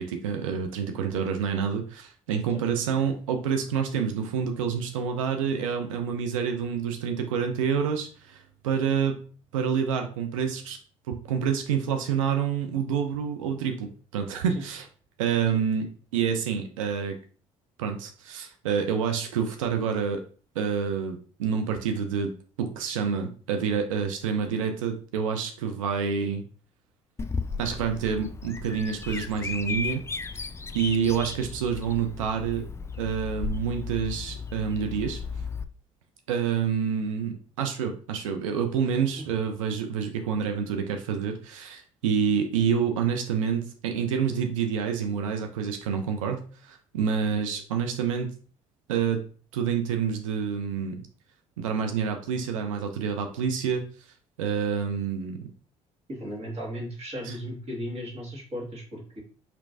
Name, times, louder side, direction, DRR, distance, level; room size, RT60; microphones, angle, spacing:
voice 1, 0.0-9.2 9.5-10.8 11.1-14.9 15.2-17.2 17.8-20.2 20.6-22.3 22.6-26.4 27.6-30.0 30.3-30.4 30.7-32.7 33.0-35.2 36.3-48.3 48.9-49.2 49.5-51.1 51.6-53.9 54.4-55.5 57.2-57.4, right 7 dB, 90° right, 5 dB, 0.4 m, -28 dB
Bird vocalization bird call bird song, 27.2-35.6, left 5 dB, 15° left, 0.3 m, -35 dB
voice 2, 56.1-59.2, equal, 40° right, -1 dB, 1.8 m, -36 dB
4.4 x 3.0 x 2.6 m, 0.41 s
hypercardioid pair, 60°, 16 cm